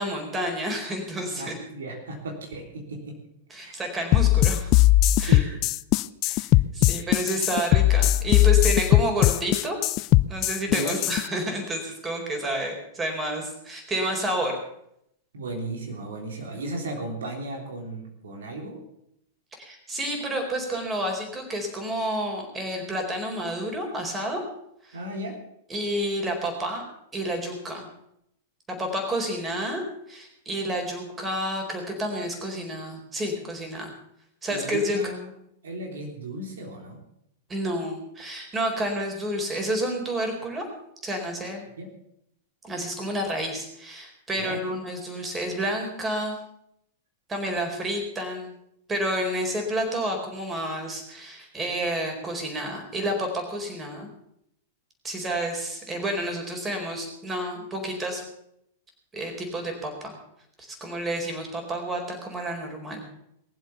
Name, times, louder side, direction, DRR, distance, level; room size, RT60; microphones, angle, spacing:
voice 1, 0.0-1.6 3.5-4.7 5.2-5.4 6.2-9.8 10.3-14.6 19.6-24.4 24.8-25.0 25.7-26.8 27.1-27.9 28.7-29.8 30.1-33.9 34.4-35.0 37.5-40.7 41.0-41.6 42.6-46.4 47.3-48.5 48.9-54.1 55.0-58.2 59.1-60.2 60.6-63.0, right 1 dB, 20° right, 3 dB, 4.6 m, -30 dB
voice 2, 1.4-3.2 3.6-3.7 5.1-5.6 6.8-7.1 10.7-11.0 15.3-18.8 24.9-25.4 34.5-35.3 35.6-37.0 41.8-41.9 44.4-44.7, right 2 dB, 75° right, 2 dB, 3.4 m, -35 dB
sound 1, 4.1-11.2, left 15 dB, 45° left, 0.5 m, -19 dB
21.0 x 7.7 x 7.0 m, 0.76 s
hypercardioid pair, 105°, 0 cm